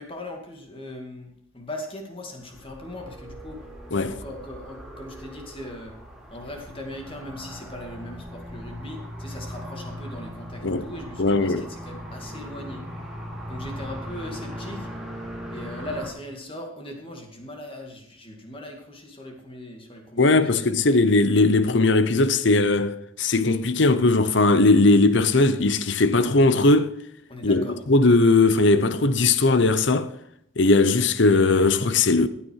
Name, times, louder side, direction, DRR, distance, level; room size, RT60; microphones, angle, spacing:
voice 1, 0.0-3.7 4.1-5.9 6.3-12.9 13.5-14.9 15.5-20.7 27.3-27.8, left 1 dB, 25° left, 2.2 m, -39 dB
sound 1, 2.4-16.1, equal, ahead, 3.0 m, -39 dB
voice 2, 11.2-11.6 20.2-26.9 27.4-30.1 30.6-32.3, left 2 dB, 55° left, 0.8 m, -19 dB
15.0 x 9.3 x 4.7 m
head